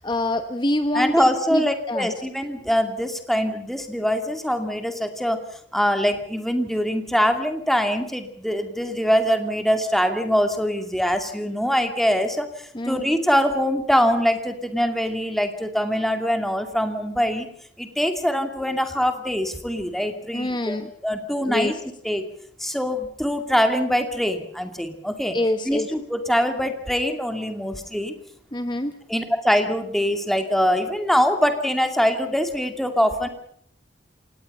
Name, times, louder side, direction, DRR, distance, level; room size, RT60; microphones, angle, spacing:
voice 1, 0.0-1.6 1.9-2.1 12.7-13.1 20.3-20.9 21.4-21.7 25.3-25.9 28.5-28.9, left 1 dB, 25° left, 9 dB, 1.1 m, -25 dB
voice 2, 0.9-5.4 5.7-12.5 12.9-17.5 17.8-21.7 22.0-22.2 22.6-25.4 25.6-28.1 29.1-33.3, equal, ahead, 6 dB, 2.5 m, -23 dB
28.0 x 18.5 x 5.6 m, 0.66 s
head